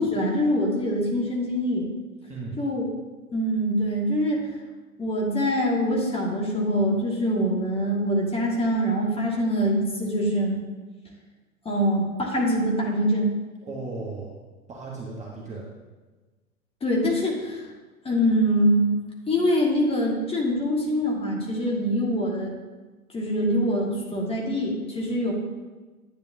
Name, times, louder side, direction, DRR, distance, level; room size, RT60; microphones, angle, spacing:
voice 1, 0.0-1.9 2.6-2.9 3.3-4.6 5.0-10.6 11.6-13.3 16.8-17.7 18.0-18.8 19.3-22.5 23.1-25.3, equal, 15° left, -2 dB, 1.6 m, -24 dB
voice 2, 2.3-2.6 13.6-14.3 14.7-15.7, right 3 dB, 15° right, -3 dB, 1.2 m, -35 dB
10.0 x 8.8 x 2.7 m, 1.3 s
figure-of-eight pair, 105°, 44 cm